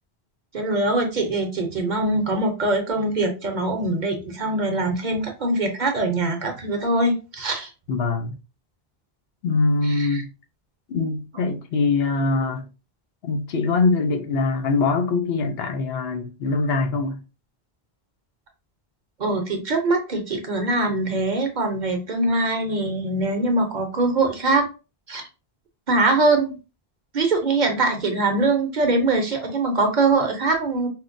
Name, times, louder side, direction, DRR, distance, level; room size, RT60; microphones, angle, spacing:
voice 1, 0.5-7.7 9.9-10.2 19.2-24.7 25.1-25.2 25.9-26.5 27.1-30.9, right 2 dB, 50° right, 0.7 m, -22 dB
voice 2, 7.9-8.4 9.4-10.3 10.9-12.7 13.2-17.2, left 3 dB, 75° left, 0.9 m, -23 dB
4.4 x 2.1 x 2.5 m
omnidirectional pair, 1.0 m